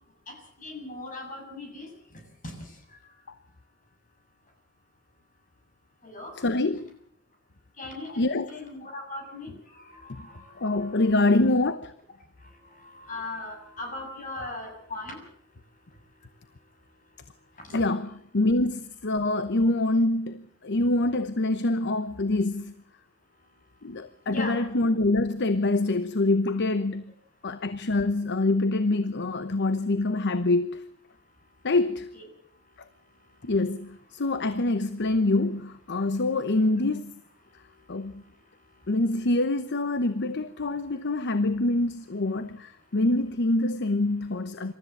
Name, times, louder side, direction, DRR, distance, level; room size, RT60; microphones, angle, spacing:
voice 1, 0.3-1.9 2.4-2.7 6.0-6.3 7.8-8.2 8.5-11.1 12.7-15.2 24.3-24.6 32.1-32.2, left 2 dB, 40° left, 6.9 m, -39 dB
voice 2, 6.4-6.9 8.2-8.5 10.2-10.3 10.6-11.9 17.7-22.7 23.8-27.0 27.4-30.9 31.6-32.2 32.8-32.9 33.4-37.1 37.9-38.2 38.9-44.7, left 2 dB, 55° left, 1.0 m, -25 dB
26.5 x 14.0 x 8.0 m
head